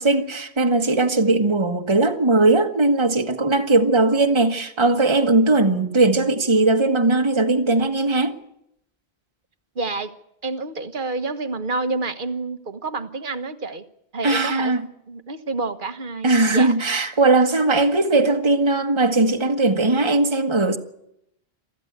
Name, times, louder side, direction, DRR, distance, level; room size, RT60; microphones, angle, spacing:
voice 1, 0.0-8.4 14.2-14.9 16.2-20.8, right 2 dB, 25° right, 1.5 m, -19 dB
voice 2, 9.7-10.1 10.4-13.8 14.1-14.7 15.1-16.7, right 3 dB, 55° right, 1.4 m, -28 dB
23.5 x 14.5 x 8.1 m
omnidirectional pair, 1.1 m